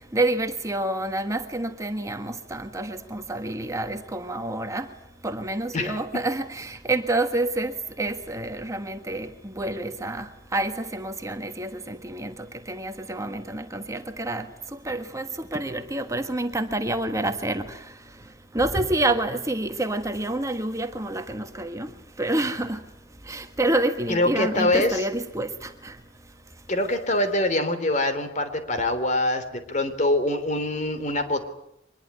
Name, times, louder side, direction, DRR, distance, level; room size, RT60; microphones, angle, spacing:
voice 1, 0.1-4.9 5.2-12.3 12.7-14.4 14.8-17.8 18.5-21.9 22.2-22.8 23.3-25.9, right 2 dB, 15° right, 1.4 m, -28 dB
voice 2, 5.7-6.2 24.1-25.0 26.7-31.5, left 1 dB, 40° left, 3.4 m, -24 dB
24.0 x 21.0 x 9.7 m
head